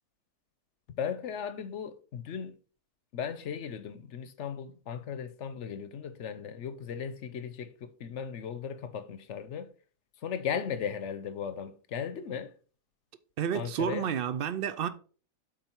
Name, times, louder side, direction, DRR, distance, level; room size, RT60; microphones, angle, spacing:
voice 1, 1.0-2.5 3.1-9.7 10.2-12.5 13.5-14.1, left 7 dB, 60° left, 0.9 m, -37 dB
voice 2, 13.4-14.9, right 8 dB, 70° right, 0.5 m, -30 dB
7.5 x 4.7 x 4.4 m
omnidirectional pair, 1.6 m